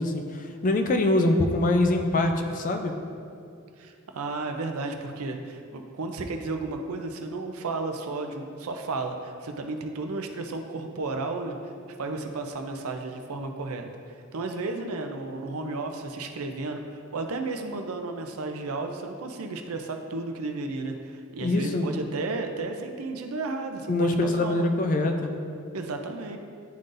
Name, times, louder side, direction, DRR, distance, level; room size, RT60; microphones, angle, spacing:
voice 1, 0.0-2.9 21.4-22.0 23.9-25.3, left 2 dB, 40° left, 5 dB, 0.4 m, -24 dB
voice 2, 3.8-11.7 12.0-24.7 25.7-26.4, right 3 dB, 85° right, 5 dB, 0.5 m, -33 dB
10.5 x 3.8 x 2.6 m, 2.4 s
head